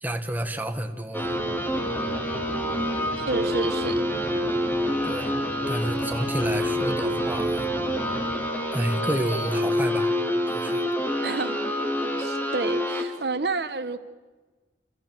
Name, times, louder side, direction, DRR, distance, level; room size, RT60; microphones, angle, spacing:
voice 1, 0.0-1.3 5.0-5.3 5.7-7.7 8.7-10.2 10.5-10.9, right 1 dB, 10° right, 6 dB, 1.4 m, -30 dB
sound 1, 1.1-13.0, equal, 10° left, 3.2 m, -27 dB
sound 2, 1.2-8.3, equal, 25° right, 4.5 m, -38 dB
voice 2, 3.3-4.1 11.2-11.6 12.2-14.0, right 3 dB, 65° right, 12 dB, 1.1 m, -29 dB
27.5 x 27.5 x 7.6 m, 1.3 s
head